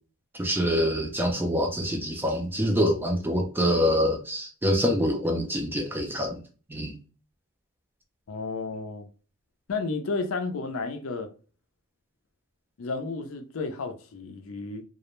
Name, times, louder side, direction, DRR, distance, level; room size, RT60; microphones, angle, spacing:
voice 1, 0.4-6.4 6.7-6.9, equal, 10° right, 0.4 m, -25 dB
voice 2, 8.3-9.1 9.7-11.3 12.8-14.8, left 3 dB, 70° left, 0.5 m, -32 dB
2.4 x 2.0 x 3.0 m
head